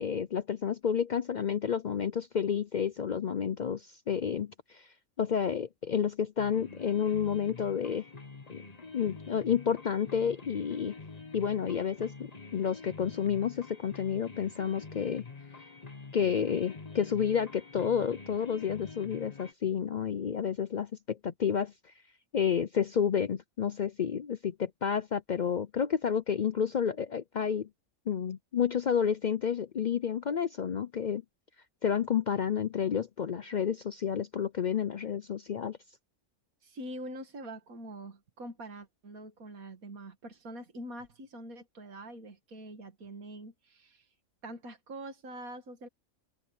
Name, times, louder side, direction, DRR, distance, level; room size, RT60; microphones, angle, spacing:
voice 1, 0.0-4.9 5.2-8.0 8.5-8.6 8.9-10.9 11.3-15.2 16.1-21.7 22.3-27.7 28.1-31.2 31.8-35.8, left 7 dB, 75° left, 0.4 m, -30 dB
sound 1, 6.4-19.5, left 4 dB, 30° left, 1.3 m, -47 dB
voice 2, 36.6-44.1 44.4-45.9, right 1 dB, 75° right, 2.7 m, -44 dB
omnidirectional pair, 1.5 m